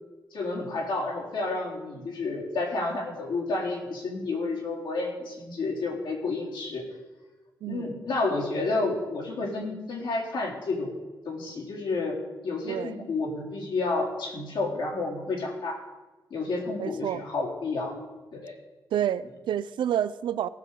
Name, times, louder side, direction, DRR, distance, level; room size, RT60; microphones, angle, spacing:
voice 1, 0.3-6.9 7.7-10.9 11.3-12.2 12.4-15.8 16.3-17.9 18.3-18.5, left 3 dB, 80° left, -3 dB, 4.0 m, -30 dB
voice 2, 7.6-7.9 12.7-13.0 16.8-17.2 18.9-20.5, right 10 dB, 90° right, 15 dB, 0.5 m, -29 dB
17.5 x 6.6 x 5.5 m, 1.2 s
cardioid pair, 95°, 8 cm